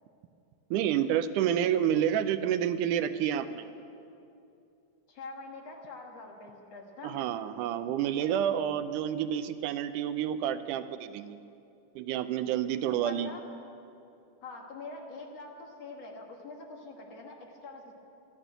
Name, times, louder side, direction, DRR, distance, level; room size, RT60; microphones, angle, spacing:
voice 1, 0.7-3.7 7.0-11.4 12.0-13.3, right 10 dB, 85° right, 11 dB, 2.1 m, -29 dB
voice 2, 5.1-7.2 13.0-13.4 14.4-17.9, left 3 dB, 60° left, 1 dB, 2.5 m, -44 dB
13.5 x 11.0 x 9.1 m, 2.6 s
omnidirectional pair, 3.6 m